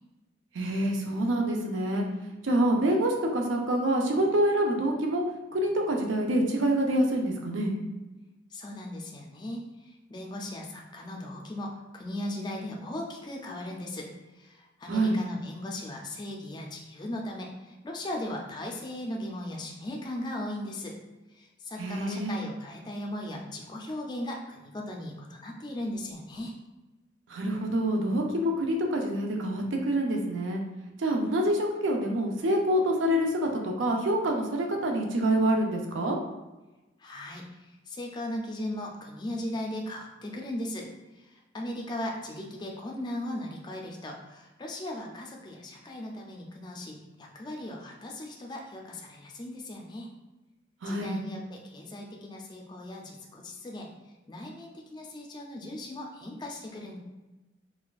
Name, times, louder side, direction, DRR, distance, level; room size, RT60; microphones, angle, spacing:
voice 1, 0.5-2.1 2.4-5.2 5.5-7.7 14.9-15.2 21.8-22.4 27.3-30.6 31.0-36.2 50.8-51.2, right 1 dB, 85° right, 1 dB, 0.6 m, -26 dB
voice 2, 8.5-21.0 21.3-26.5 37.0-40.9 41.1-50.1 50.9-53.9 54.3-57.0, left 1 dB, 25° left, 0 dB, 0.4 m, -38 dB
4.1 x 2.3 x 2.3 m, 1.1 s
head